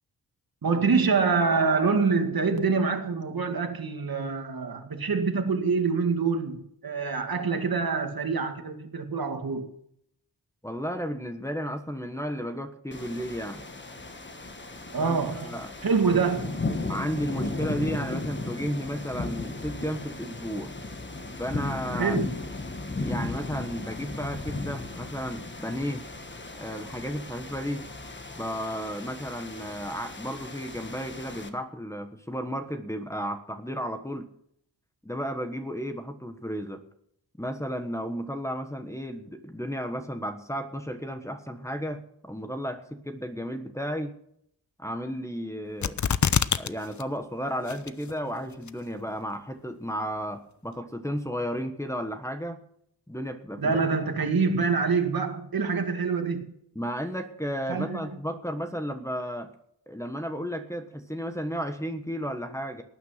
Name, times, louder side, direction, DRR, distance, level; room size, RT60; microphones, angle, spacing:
voice 1, 0.6-9.7 14.9-16.6 22.0-22.3 53.6-56.5 57.7-58.2, right 4 dB, 60° right, 2.1 m, -26 dB
voice 2, 10.6-13.6 15.0-15.7 16.9-20.7 21.4-22.2 23.0-26.0 26.5-27.9 28.4-34.3 35.0-36.8 37.4-44.1 44.8-46.0 46.6-52.6 53.1-53.8 56.7-59.5 59.9-62.8, equal, 5° left, 1.3 m, -33 dB
sound 1, 12.9-31.5, left 2 dB, 30° left, 1.5 m, -36 dB
sound 2, 45.8-46.7 47.0-47.1 47.7-48.1 48.7-48.8, left 7 dB, 45° left, 0.6 m, -24 dB
18.5 x 9.4 x 5.8 m
wide cardioid pair, 135°, 40 cm